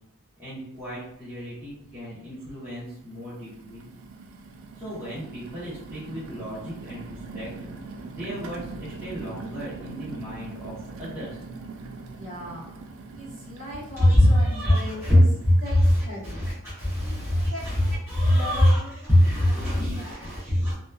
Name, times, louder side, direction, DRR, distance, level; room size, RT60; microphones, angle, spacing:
voice 1, 0.4-3.8 4.8-7.0 7.3-7.5 8.0-10.7 11.0-11.3 14.0-15.2 15.9-18.8 19.1-20.7, left 1 dB, 10° right, -12 dB, 0.8 m, -25 dB
sound 1, 0.8-0.9 1.3-2.0 2.6-15.8, right 3 dB, 65° right, 0.3 m, -42 dB
voice 2, 12.1-12.7 13.1-15.2 15.6-16.4 17.0-17.2 17.5-17.7 18.3-20.5, left 1 dB, 35° right, -8 dB, 1.1 m, -39 dB
2.8 x 2.3 x 2.2 m, 0.81 s
head